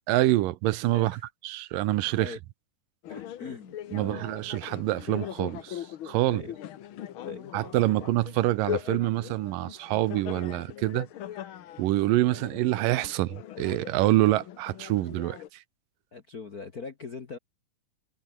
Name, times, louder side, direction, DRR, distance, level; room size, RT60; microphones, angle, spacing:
voice 1, 0.1-2.4 3.9-6.4 7.5-11.1 11.8-15.6, right 16 dB, 85° right, 2.5 m, -26 dB
voice 2, 0.9-1.2 2.2-2.4 3.1-4.2 6.2-6.5 7.2-7.5 16.1-17.4, left 4 dB, 45° left, 1.2 m, -41 dB
sound 1, 3.0-15.5, left 11 dB, 80° left, 1.1 m, -40 dB
omnidirectional pair, 3.9 m